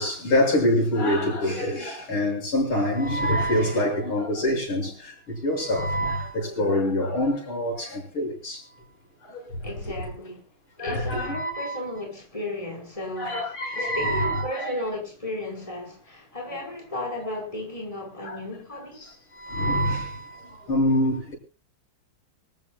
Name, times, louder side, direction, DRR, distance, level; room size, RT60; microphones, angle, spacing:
voice 1, 0.0-8.7 9.2-9.7 10.8-11.8 13.2-14.7 16.5-16.6 18.2-18.4 19.0-21.3, left 1 dB, 90° left, 7.9 m, -26 dB
voice 2, 9.6-10.4 10.8-19.0, left 1 dB, 15° left, 5.1 m, -34 dB
25.5 x 14.5 x 2.4 m
omnidirectional pair, 2.3 m